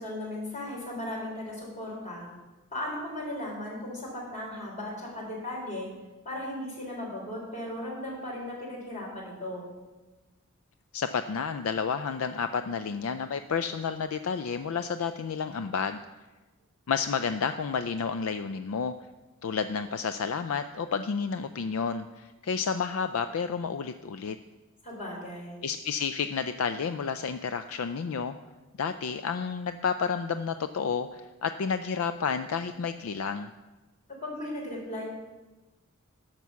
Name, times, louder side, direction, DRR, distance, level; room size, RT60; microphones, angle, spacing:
voice 1, 0.0-2.3 2.7-5.9 6.2-9.7 24.8-25.6 34.2-35.1, left 1 dB, 35° left, -2 dB, 3.7 m, -36 dB
voice 2, 10.9-16.0 16.9-18.9 19.4-24.4 25.6-28.3 28.8-33.5, left 6 dB, 70° left, 10 dB, 0.4 m, -30 dB
10.5 x 6.1 x 7.0 m, 1.2 s
head